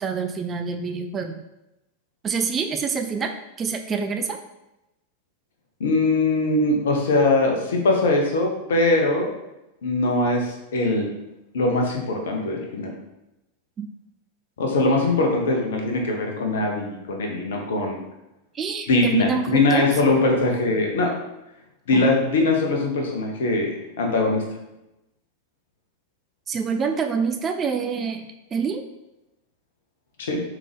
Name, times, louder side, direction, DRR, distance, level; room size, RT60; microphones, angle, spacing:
voice 1, 0.0-1.4 2.2-4.4 13.8-13.9 18.5-19.9 21.9-22.0 26.5-28.8, right 5 dB, 25° right, 5 dB, 0.4 m, -27 dB
voice 2, 5.8-9.3 9.8-11.1 11.5-12.9 14.6-18.0 18.9-21.1 21.9-24.4 30.2-30.4, left 2 dB, 60° left, 1 dB, 0.9 m, -21 dB
3.6 x 3.6 x 3.4 m, 0.93 s
figure-of-eight pair, 90°, 0 cm